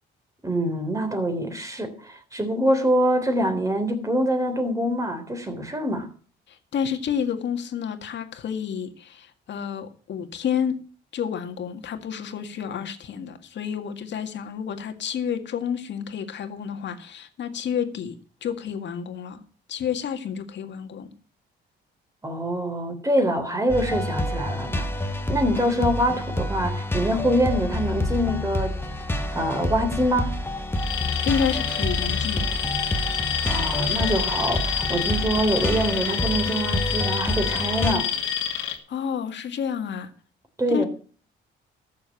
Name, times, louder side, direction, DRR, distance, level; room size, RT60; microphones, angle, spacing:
voice 1, 0.4-6.1 22.2-28.8 29.3-30.4 33.4-38.1 40.6-40.9, equal, 15° right, 3.5 m, -25 dB
voice 2, 6.5-10.8 11.1-19.4 19.7-21.1 31.2-32.6 38.9-40.1 40.7-40.8, left 7 dB, 65° left, 2.0 m, -30 dB
sound 1, 23.7-37.9, left 1 dB, 10° left, 1.5 m, -28 dB
Alarm, 30.8-38.8, left 8 dB, 90° left, 2.4 m, -28 dB
13.5 x 6.9 x 7.3 m
cardioid pair, 90°, 20 cm